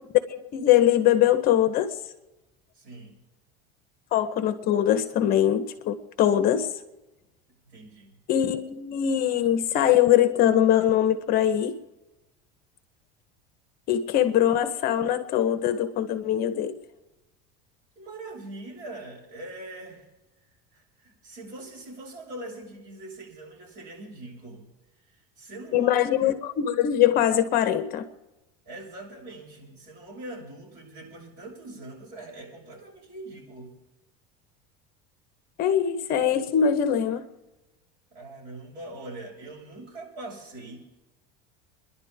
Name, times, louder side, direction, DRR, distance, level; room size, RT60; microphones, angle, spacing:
voice 1, 0.3-1.9 4.1-6.7 8.3-11.7 13.9-16.8 25.7-28.1 35.6-37.2, left 10 dB, 45° left, 1.0 m, -22 dB
voice 2, 2.7-3.2 7.6-8.1 17.9-20.1 20.7-24.7 25.1-26.0 28.6-33.7 38.1-40.8, right 2 dB, 45° right, 6.6 m, -42 dB
27.5 x 11.0 x 3.6 m
cardioid pair, 145°, 21 cm